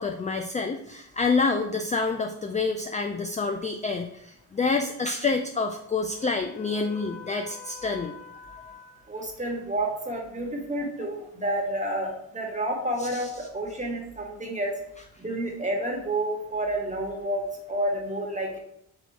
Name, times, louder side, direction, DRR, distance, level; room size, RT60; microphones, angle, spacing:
voice 1, 0.0-8.9 13.0-13.3, left 4 dB, 20° left, 5 dB, 0.3 m, -28 dB
voice 2, 9.1-14.7 15.2-18.6, right 1 dB, 15° right, 0 dB, 1.4 m, -30 dB
3.8 x 3.0 x 4.5 m, 0.75 s
cardioid pair, 60°, 41 cm